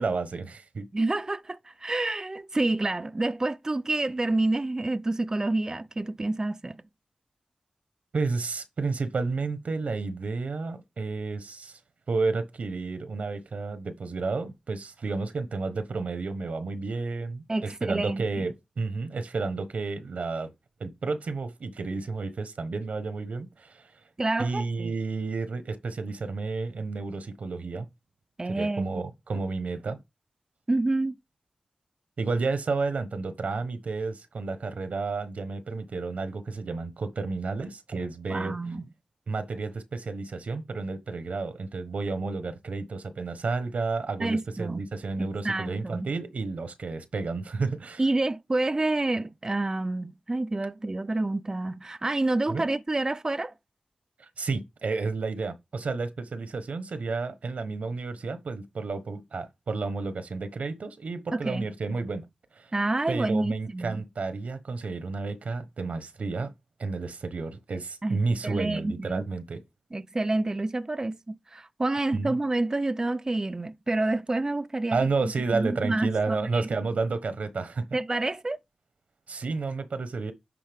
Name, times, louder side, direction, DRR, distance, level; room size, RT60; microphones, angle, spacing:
voice 1, 0.0-0.9 8.1-11.8 12.1-20.5 20.8-23.9 24.4-27.8 28.4-30.0 32.2-38.6 39.3-48.0 52.5-52.6 54.2-62.2 62.5-62.7 63.1-66.5 66.8-69.6 72.1-72.3 74.9-77.9 79.3-80.3, right 4 dB, 85° right, 1.1 m, -31 dB
voice 2, 0.9-6.8 17.5-18.5 24.2-24.9 28.4-29.0 30.7-31.2 38.3-38.9 44.2-44.8 45.2-46.1 48.0-53.5 61.3-61.7 62.7-64.0 68.0-69.3 69.9-76.7 77.9-78.6, right 2 dB, 25° right, 0.4 m, -28 dB
10.0 x 4.1 x 3.5 m
wide cardioid pair, 80°, 2 cm